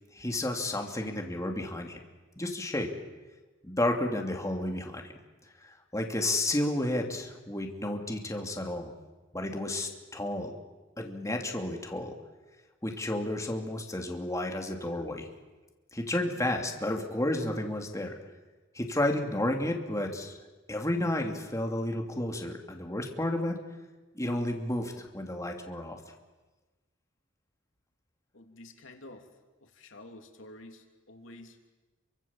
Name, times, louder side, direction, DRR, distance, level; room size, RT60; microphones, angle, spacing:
voice 1, 0.1-2.0 2.4-2.9 3.6-5.0 5.6-8.9 9.3-10.5 11.0-12.1 12.8-15.3 15.9-18.2 18.7-20.4 20.7-23.6 24.1-26.0, left 1 dB, 15° left, 2 dB, 2.9 m, -31 dB
voice 2, 28.3-29.3 29.6-31.7, left 2 dB, 80° left, 4 dB, 3.1 m, -50 dB
29.0 x 25.0 x 7.4 m, 1.2 s
head